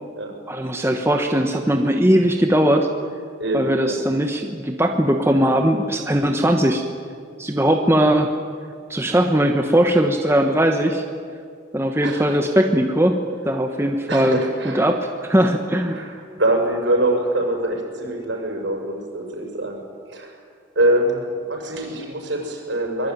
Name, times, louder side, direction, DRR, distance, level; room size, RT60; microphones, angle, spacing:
voice 1, 0.5-2.9 3.5-6.8 7.4-8.3 8.9-11.0 11.7-13.2 13.4-14.4 14.6-16.0, right 1 dB, 10° right, 4 dB, 1.2 m, -19 dB
voice 2, 3.4-4.0 12.0-12.4 14.1-14.9 15.9-19.8 20.1-20.4 20.7-23.1, right 1 dB, 65° right, 2 dB, 6.3 m, -24 dB
24.0 x 21.5 x 9.4 m, 2.2 s
head